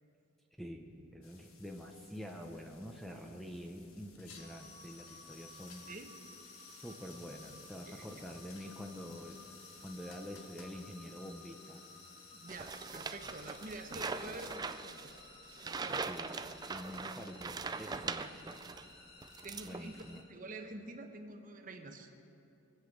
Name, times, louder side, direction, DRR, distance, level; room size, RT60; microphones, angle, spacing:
voice 1, 0.6-5.9 6.8-9.4 9.8-11.9 16.1-16.4 16.7-18.6 19.6-20.2, equal, ahead, 2 dB, 0.8 m, -47 dB
sound 1, 1.2-14.6, left 5 dB, 90° left, 1.5 m, -59 dB
sound 2, 4.4-20.2, left 3 dB, 55° left, 1.9 m, -56 dB
voice 2, 7.9-8.2 12.3-15.1 15.6-16.1 19.4-20.0 20.3-22.1, right 2 dB, 40° right, 5 dB, 1.1 m, -47 dB
sound 3, 12.5-18.9 19.2-20.1, right 4 dB, 20° right, 0.3 m, -41 dB
23.0 x 8.0 x 6.6 m, 2.7 s
head